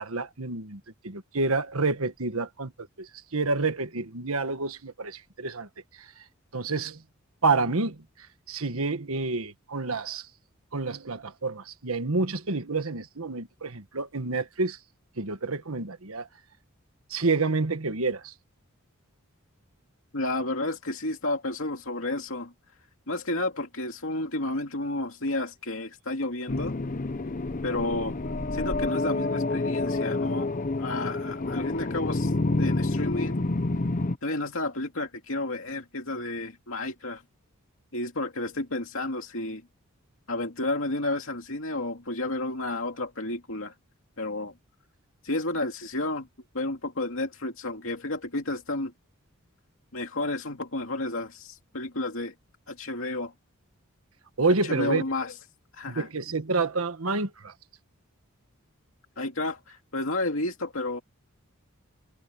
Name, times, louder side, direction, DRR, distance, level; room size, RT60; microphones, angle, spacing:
voice 1, 0.0-2.7 3.0-5.7 6.5-7.0 7.4-8.0 8.5-10.3 10.7-14.8 15.2-16.3 17.1-18.3 54.4-55.0 55.9-57.5, right 3 dB, 85° right, 1.5 m, -28 dB
voice 2, 20.1-22.5 23.1-26.7 27.6-28.1 28.5-30.5 30.8-32.3 32.6-33.4 34.2-37.2 37.9-39.6 40.3-43.7 44.2-44.5 45.2-46.3 46.5-48.9 49.9-52.3 52.7-53.3 54.6-55.3 55.7-56.1 59.2-61.0, left 2 dB, 70° left, 2.6 m, -31 dB
sound 1, 26.5-34.2, left 2 dB, 40° left, 0.7 m, -28 dB
head